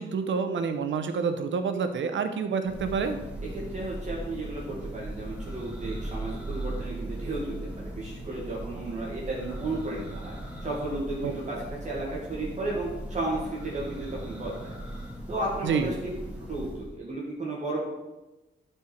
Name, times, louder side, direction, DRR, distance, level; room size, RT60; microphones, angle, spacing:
voice 1, 0.0-3.2 11.2-11.3 15.6-15.9, right 5 dB, 75° right, 8 dB, 0.9 m, -28 dB
Church bell, 2.7-17.0, right 1 dB, 5° right, 2.1 m, -38 dB
voice 2, 3.5-10.3 10.6-11.6 11.8-14.7 15.3-15.9 16.5-17.9, right 2 dB, 35° right, -6 dB, 2.0 m, -33 dB
11.5 x 4.6 x 4.5 m, 1.1 s
wide cardioid pair, 115°, 20 cm